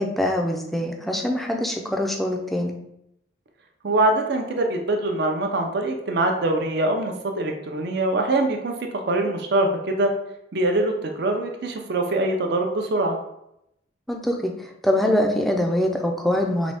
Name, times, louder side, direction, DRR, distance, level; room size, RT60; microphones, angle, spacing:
voice 1, 0.0-2.7 14.1-16.7, left 1 dB, ahead, 2 dB, 0.4 m, -24 dB
voice 2, 3.8-10.1 10.5-13.2, right 2 dB, 60° right, 4 dB, 0.6 m, -23 dB
3.9 x 3.2 x 3.5 m, 0.81 s
head